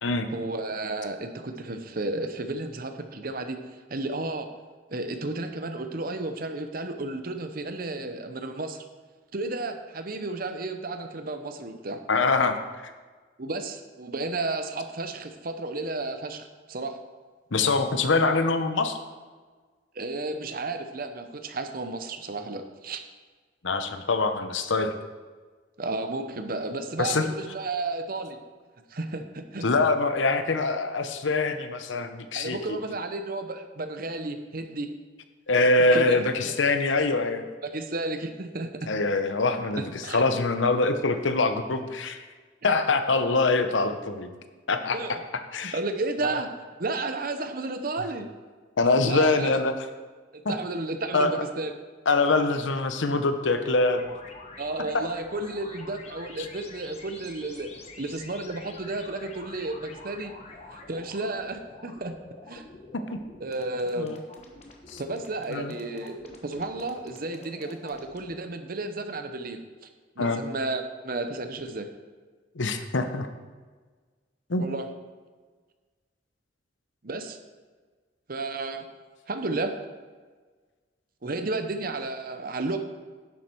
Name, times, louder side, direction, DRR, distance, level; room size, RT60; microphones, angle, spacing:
voice 1, 0.3-3.6 3.9-4.5 4.9-8.8 9.3-12.0 13.4-17.0 19.9-23.0 25.8-28.4 28.9-29.6 32.3-34.9 35.9-36.6 37.6-38.9 39.8-40.2 44.9-45.2 45.7-46.5 46.8-48.3 49.0-49.5 50.3-51.7 54.6-57.7 58.0-60.4 60.7-62.1 62.5-62.6 63.4-64.2 65.0-69.6 70.2-71.9 74.6-74.9 77.0-77.4 78.3-78.8 79.3-79.7 81.2-82.8, right 2 dB, 50° right, 8 dB, 0.8 m, -32 dB
voice 2, 12.1-12.6 17.5-19.0 23.6-24.9 27.0-27.3 29.6-32.8 35.5-37.4 38.9-42.2 42.6-44.3 44.7-45.2 45.5-45.7 48.8-49.7 50.4-50.5 51.1-51.3 52.1-54.0 64.0-64.2 64.9-65.0 65.5-65.7 70.2-70.4 72.6-73.3 74.5-74.7, left 3 dB, 80° left, 8 dB, 0.8 m, -24 dB
sound 1, 53.8-68.4, left 3 dB, 35° left, 1.2 m, -46 dB
11.0 x 7.6 x 4.6 m, 1.4 s
head